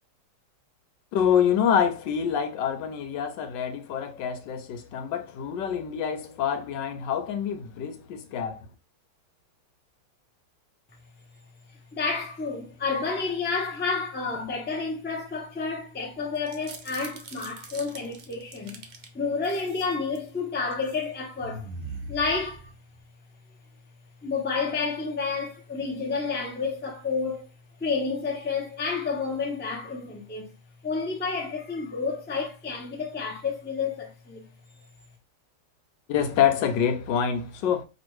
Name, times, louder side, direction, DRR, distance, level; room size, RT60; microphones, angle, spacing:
voice 1, 1.1-8.7 36.1-37.8, left 8 dB, 85° left, 1.4 m, -26 dB
voice 2, 11.9-18.8 19.1-21.7 22.1-22.7 24.2-27.5 27.8-30.5 30.8-34.5, left 4 dB, 15° left, 0.4 m, -30 dB
sound 1, 16.3-19.1 19.4-20.3 20.7-21.0 21.4-23.0, right 2 dB, 55° right, 0.7 m, -42 dB
5.2 x 2.5 x 3.1 m
omnidirectional pair, 1.9 m